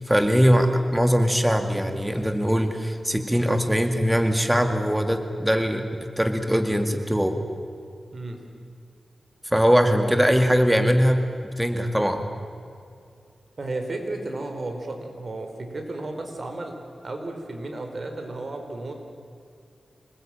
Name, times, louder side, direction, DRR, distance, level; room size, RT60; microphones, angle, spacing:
voice 1, 0.0-5.9 6.2-7.4 9.4-11.2 11.6-12.2, equal, 5° right, 6 dB, 2.3 m, -21 dB
voice 2, 13.6-16.7 17.0-18.9, right 2 dB, 50° right, 4 dB, 4.6 m, -33 dB
27.0 x 20.5 x 9.1 m, 2.4 s
cardioid pair, 70°, 0 cm